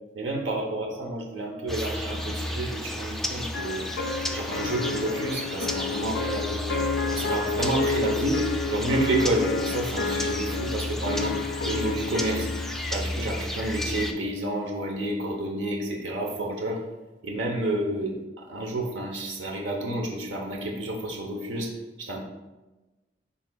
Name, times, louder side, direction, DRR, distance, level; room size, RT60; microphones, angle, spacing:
voice 1, 0.1-3.8 4.3-6.7 7.1-11.4 11.6-12.5 12.9-16.8 17.2-21.7 22.0-22.2, right 1 dB, 90° right, 0 dB, 0.9 m, -29 dB
sound 1, 1.7-14.1, left 1 dB, ahead, 0.4 m, -33 dB
sound 2, 3.5-13.0, left 5 dB, 70° left, 0.4 m, -31 dB
11.0 x 3.7 x 2.3 m, 1.1 s
head